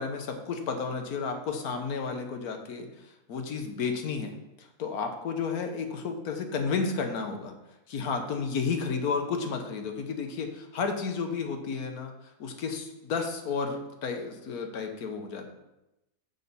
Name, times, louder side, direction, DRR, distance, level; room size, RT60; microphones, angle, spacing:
voice 1, 0.0-2.9 3.3-7.5 7.9-12.1 12.4-15.5, left 5 dB, 70° left, 5 dB, 1.5 m, -32 dB
6.5 x 5.2 x 6.8 m, 0.94 s
omnidirectional pair, 1.7 m